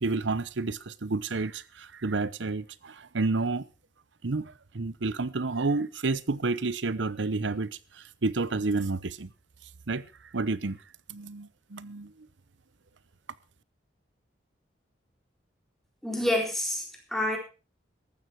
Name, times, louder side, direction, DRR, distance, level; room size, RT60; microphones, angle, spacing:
voice 1, 0.0-3.7 4.2-9.3 9.9-10.1 10.3-10.8 11.1-12.3, right 3 dB, 80° right, 0.8 m, -30 dB
voice 2, 16.0-17.4, left 1 dB, ahead, 4.1 m, -28 dB
14.5 x 12.5 x 4.7 m
head